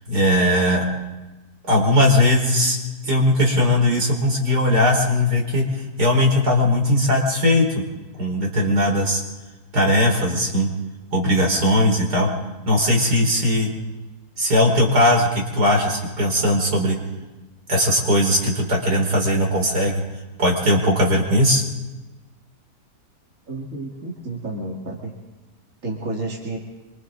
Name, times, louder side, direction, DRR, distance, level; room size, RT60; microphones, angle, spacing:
voice 1, 0.1-0.9 1.7-2.8 3.0-7.8 8.2-9.2 9.7-10.7 11.1-12.3 12.7-13.7 14.4-17.0 17.7-20.0 20.4-21.6, left 1 dB, 75° right, -1 dB, 5.2 m, -19 dB
voice 2, 23.5-25.1 25.8-26.6, right 2 dB, 50° right, -2 dB, 2.8 m, -30 dB
27.0 x 25.0 x 3.9 m, 1.1 s
omnidirectional pair, 1.7 m